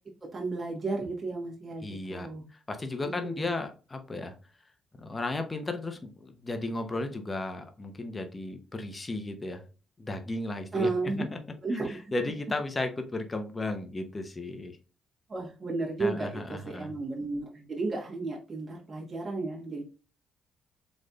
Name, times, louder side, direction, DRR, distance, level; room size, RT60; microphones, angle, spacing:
voice 1, 0.2-2.4 3.0-3.6 10.7-11.2 11.6-12.1 15.3-19.8, right 3 dB, 30° right, -3 dB, 1.3 m, -33 dB
voice 2, 1.8-4.3 5.0-9.6 10.0-10.9 11.2-11.4 11.7-14.8 16.0-16.9, left 2 dB, 25° left, 6 dB, 0.7 m, -35 dB
4.1 x 3.2 x 2.4 m, 0.34 s
cardioid pair, 90°, 0 cm